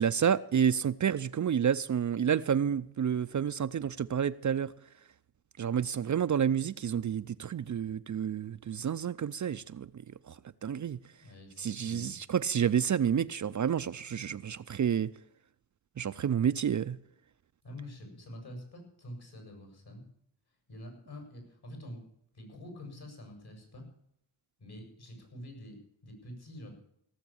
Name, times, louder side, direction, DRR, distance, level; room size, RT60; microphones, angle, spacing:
voice 1, 0.0-4.7 5.6-9.9 10.3-10.4 10.6-11.0 11.6-15.1 16.0-17.0, right 8 dB, 45° right, 0.6 m, -29 dB
voice 2, 11.2-12.1 17.6-20.1 20.7-23.9 24.6-26.8, left 1 dB, 60° left, 6.5 m, -47 dB
17.0 x 7.3 x 8.7 m
cardioid pair, 65°, 43 cm